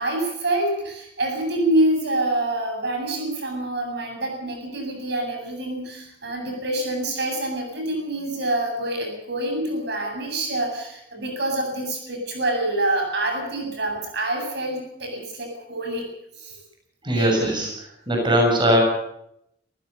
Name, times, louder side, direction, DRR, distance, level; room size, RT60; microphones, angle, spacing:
voice 1, 0.0-16.0 16.4-16.6 17.1-17.4, right 1 dB, 65° right, 2 dB, 7.9 m, -26 dB
voice 2, 17.0-18.8, equal, 25° right, 0 dB, 6.8 m, -20 dB
27.5 x 15.5 x 6.8 m, 0.77 s
head